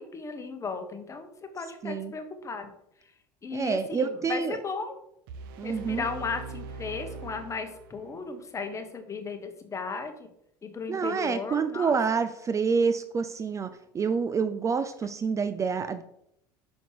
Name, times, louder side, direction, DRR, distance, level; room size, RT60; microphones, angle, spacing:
voice 1, 0.0-2.7 3.4-5.0 5.6-10.3 10.6-12.0, left 4 dB, 25° left, 6 dB, 1.3 m, -36 dB
voice 2, 3.5-4.6 5.6-6.0 10.9-16.0, right 5 dB, 25° right, 11 dB, 0.5 m, -28 dB
sound 1, 5.3-8.3, right 3 dB, 75° right, 0.7 m, -42 dB
6.3 x 5.1 x 4.7 m, 0.77 s
hypercardioid pair, 85°, 11 cm